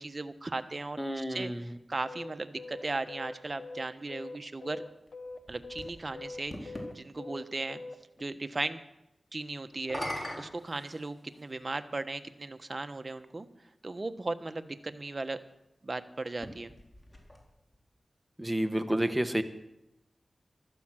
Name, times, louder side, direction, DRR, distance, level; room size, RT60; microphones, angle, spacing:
voice 1, 0.0-4.8 5.5-7.8 8.2-8.8 9.3-13.5 13.8-15.4 15.8-16.7, right 2 dB, 45° right, 9 dB, 1.2 m, -37 dB
voice 2, 1.0-1.7 18.4-19.4, right 1 dB, 10° right, 8 dB, 1.5 m, -30 dB
sound 1, 2.1-8.2, left 3 dB, 65° left, 1.3 m, -43 dB
sound 2, 5.1-6.9 9.7-11.5 12.4-12.5 16.3-17.8, left 1 dB, 30° left, 3.9 m, -42 dB
15.5 x 13.0 x 6.4 m, 0.88 s
cardioid pair, 45°, 0 cm